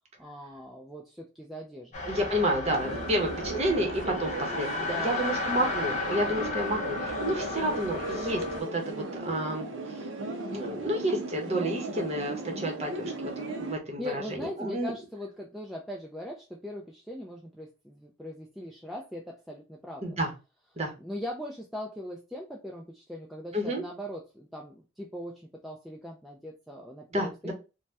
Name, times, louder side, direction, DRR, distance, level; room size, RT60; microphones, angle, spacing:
voice 1, 0.2-2.1 4.8-5.5 14.0-20.2 21.0-27.5, left 1 dB, ahead, -2 dB, 0.3 m, -40 dB
sound 1, 1.9-8.6, left 3 dB, 35° left, 0.6 m, -34 dB
voice 2, 2.1-9.7 10.5-14.9 20.0-20.3 20.8-20.9 23.5-23.8 27.1-27.5, right 1 dB, 30° right, 2 dB, 0.8 m, -30 dB
sound 2, 2.6-13.7, right 2 dB, 70° right, 0.5 m, -37 dB
2.7 x 2.1 x 3.3 m, 0.29 s
head